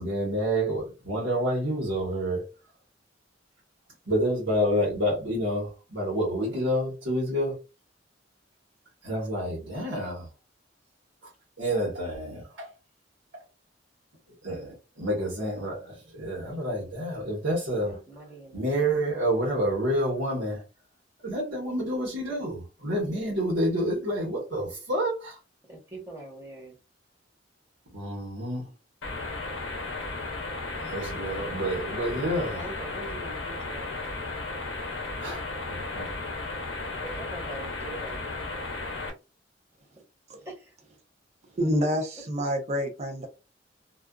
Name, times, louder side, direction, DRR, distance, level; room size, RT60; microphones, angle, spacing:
voice 1, 0.0-2.5 4.1-7.5 9.0-10.3 11.6-12.7 14.4-18.0 18.5-20.6 21.2-25.4 27.9-28.7 30.7-32.7 35.2-36.1, equal, 75° right, 1.1 m, -28 dB
voice 2, 17.8-19.0 25.7-26.8 32.5-34.0 36.8-38.2 40.4-40.7, right 1 dB, 15° right, 1.1 m, -43 dB
sound 1, 29.0-39.1, left 3 dB, 80° left, 0.6 m, -34 dB
voice 3, 41.5-43.3, equal, 35° right, 0.6 m, -27 dB
2.4 x 2.4 x 2.2 m
head